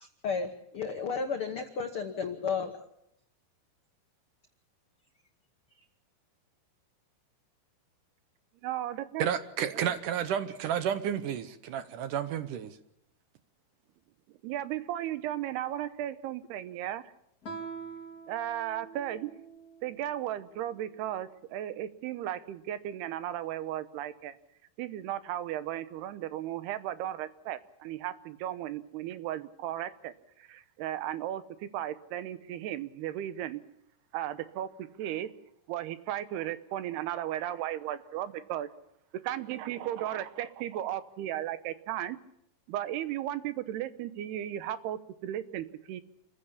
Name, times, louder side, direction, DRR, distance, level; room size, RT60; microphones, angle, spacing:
voice 1, 0.0-2.7, left 5 dB, 80° left, 1.2 m, -33 dB
voice 2, 8.6-9.2 9.7-9.9 14.4-17.0 18.3-19.3 19.8-24.4 24.8-33.6 34.1-35.3 35.7-38.7 39.2-42.2 42.7-46.0, right 12 dB, 90° right, 3.0 m, -35 dB
voice 3, 9.2-12.8, right 9 dB, 70° right, 2.1 m, -31 dB
Guitar, 17.4-19.9, right 5 dB, 35° left, 1.7 m, -44 dB
27.0 x 15.5 x 7.1 m
omnidirectional pair, 4.5 m